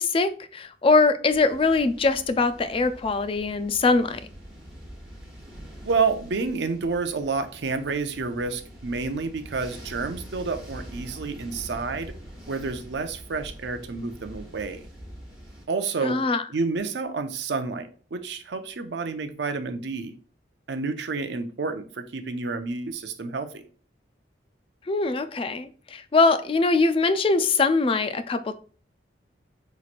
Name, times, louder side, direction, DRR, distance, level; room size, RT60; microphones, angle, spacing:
voice 1, 0.0-4.2 16.0-16.4 24.9-28.6, left 3 dB, 30° left, 0.3 m, -22 dB
sound 1, 1.3-15.6, equal, 5° right, 1.4 m, -44 dB
voice 2, 5.8-12.1 12.5-14.8 15.7-16.2 16.5-20.2 20.7-23.6, right 4 dB, 70° right, 0.5 m, -29 dB
5.6 x 3.0 x 2.5 m
head